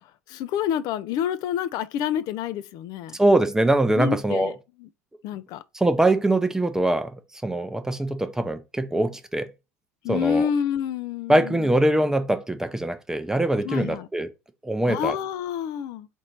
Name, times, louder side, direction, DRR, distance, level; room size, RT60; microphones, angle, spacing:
voice 1, 0.3-3.2 4.0-4.9 5.2-5.6 10.0-11.7 13.6-14.1 14.9-16.1, left 9 dB, 55° left, 0.4 m, -28 dB
voice 2, 3.2-4.5 5.7-9.5 10.1-10.5 11.3-14.3 14.6-15.1, right 1 dB, 5° right, 0.6 m, -23 dB
4.1 x 2.6 x 4.4 m
hypercardioid pair, 80°, 8 cm